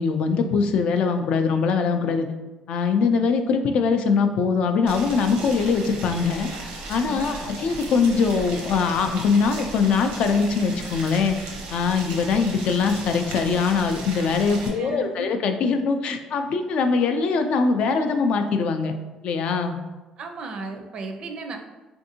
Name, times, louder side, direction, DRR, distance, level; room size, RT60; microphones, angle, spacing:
voice 1, 0.0-2.3 2.7-6.5 6.9-11.4 11.7-18.9 19.2-19.8, left 5 dB, 65° left, 6 dB, 0.3 m, -22 dB
Boiling, 4.9-14.7, right 2 dB, 90° right, 0.7 m, -36 dB
voice 2, 7.0-7.6 14.7-15.3 20.2-21.6, right 3 dB, 50° right, 4 dB, 0.4 m, -35 dB
3.5 x 2.5 x 2.7 m, 1.2 s
cardioid pair, 120°, 2 cm